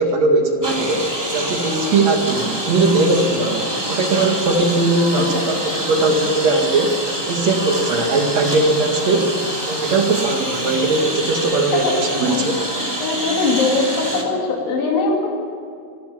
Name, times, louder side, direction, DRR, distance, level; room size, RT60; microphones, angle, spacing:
voice 1, 0.0-7.0 7.3-9.3 9.7-12.6, right 3 dB, 55° right, 3 dB, 3.2 m, -19 dB
Engine, 0.6-14.2, right 1 dB, 10° right, 2.6 m, -26 dB
voice 2, 13.0-15.3, left 3 dB, 85° left, -1 dB, 4.4 m, -21 dB
25.5 x 13.0 x 10.0 m, 2.4 s
omnidirectional pair, 3.9 m